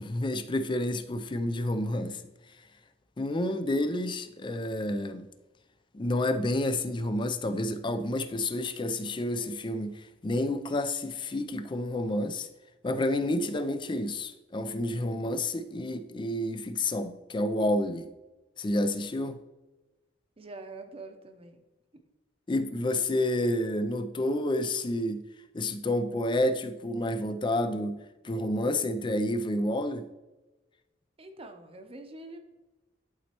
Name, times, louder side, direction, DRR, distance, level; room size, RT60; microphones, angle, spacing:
voice 1, 0.0-2.2 3.2-5.3 5.9-12.5 12.8-18.1 18.6-19.4 22.5-25.2 25.5-28.0 28.2-30.1, left 1 dB, 25° left, 0.4 m, -29 dB
voice 2, 20.4-21.6 31.2-32.4, right 2 dB, 30° right, 0.7 m, -45 dB
11.0 x 4.2 x 2.9 m
head